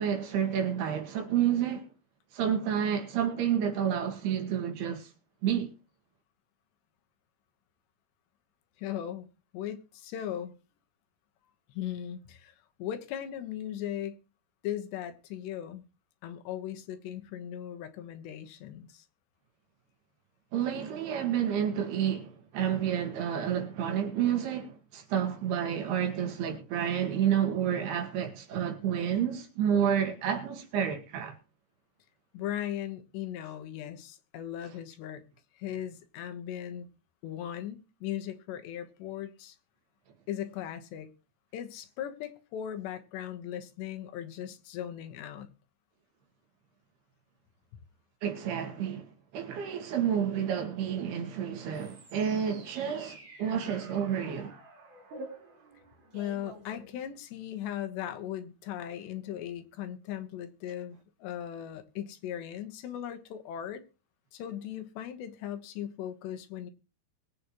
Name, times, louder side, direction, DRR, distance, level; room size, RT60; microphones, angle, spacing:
voice 1, 0.0-1.9 2.3-5.1 5.4-5.7 20.5-31.4 48.2-54.5, right 9 dB, 70° right, 3.9 m, -30 dB
voice 2, 8.8-9.3 9.5-10.5 11.7-14.2 14.6-15.8 16.2-19.1 32.3-35.2 35.5-36.9 37.2-39.6 40.3-41.1 41.5-45.5 56.1-63.8 64.3-66.7, left 10 dB, 80° left, 3.4 m, -38 dB
sound 1, 51.7-57.4, right 2 dB, 50° right, 5.5 m, -49 dB
22.0 x 8.4 x 3.0 m
omnidirectional pair, 5.0 m